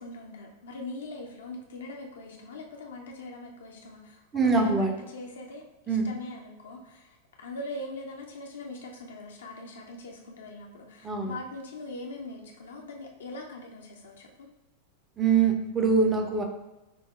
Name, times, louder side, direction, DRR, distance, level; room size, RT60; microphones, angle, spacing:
voice 1, 0.0-14.5, left 2 dB, 65° left, 1 dB, 0.4 m, -42 dB
voice 2, 4.3-4.9 5.9-6.1 11.0-11.4 15.2-16.4, right 4 dB, 20° right, 3 dB, 0.5 m, -23 dB
5.9 x 2.0 x 2.3 m, 1.0 s
figure-of-eight pair, 90°, 0 cm